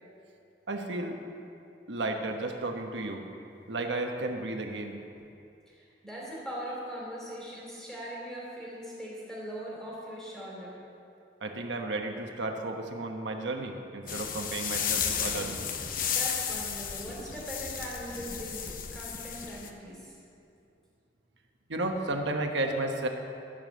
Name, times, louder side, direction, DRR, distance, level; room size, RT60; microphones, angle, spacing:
voice 1, 0.7-1.2 1.9-3.2 3.7-5.0 11.4-15.9 21.7-23.1, right 2 dB, 90° right, 3 dB, 1.1 m, -33 dB
voice 2, 5.7-10.8 16.1-20.1, equal, 5° left, -6 dB, 3.1 m, -40 dB
sound 1, 14.1-19.7, left 7 dB, 50° left, 0.8 m, -33 dB
15.0 x 5.3 x 7.5 m, 2.6 s
head